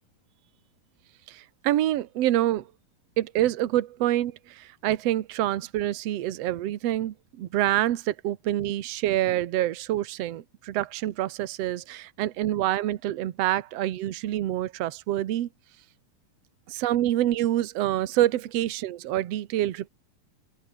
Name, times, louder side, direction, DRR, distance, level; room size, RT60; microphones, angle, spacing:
voice 1, 1.3-2.7 3.2-15.5 16.7-19.9, right 13 dB, 60° right, 1.7 m, -26 dB
open air
omnidirectional pair, 4.2 m